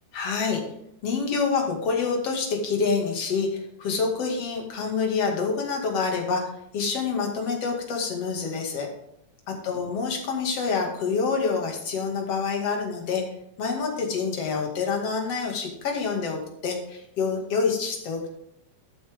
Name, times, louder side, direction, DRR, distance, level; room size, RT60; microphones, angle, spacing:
voice 1, 0.1-0.6 1.0-8.9 9.5-13.2 13.6-18.3, left 5 dB, 55° left, 1 dB, 3.2 m, -27 dB
13.0 x 8.7 x 3.6 m, 0.78 s
omnidirectional pair, 3.5 m